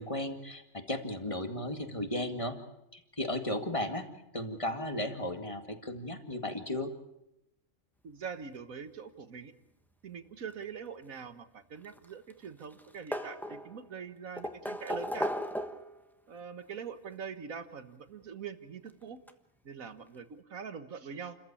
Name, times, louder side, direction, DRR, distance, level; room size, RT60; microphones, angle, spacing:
voice 1, 0.0-2.5 2.9-4.1 4.3-6.9, left 1 dB, 25° left, 6 dB, 2.1 m, -35 dB
voice 2, 8.0-9.5 10.0-15.3 16.3-19.2 19.6-21.4, right 6 dB, 90° right, 10 dB, 1.8 m, -43 dB
sound 1, 11.8-12.5 12.7-13.9 14.4-16.0 17.2-17.3 18.9-19.0 19.3-19.4, equal, ahead, 1.2 m, -36 dB
29.5 x 14.5 x 8.6 m, 0.87 s
omnidirectional pair, 1.4 m